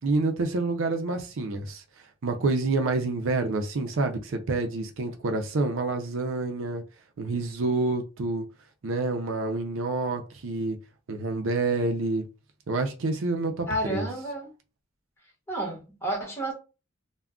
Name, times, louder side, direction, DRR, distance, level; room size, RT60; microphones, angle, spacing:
voice 1, 0.0-1.8 2.2-6.8 7.2-8.5 8.8-10.8 11.1-12.2 12.7-14.1, right 3 dB, 65° right, 0.5 m, -28 dB
voice 2, 13.7-14.5 15.5-16.5, right 1 dB, 10° left, 1.0 m, -31 dB
2.3 x 2.1 x 3.6 m
head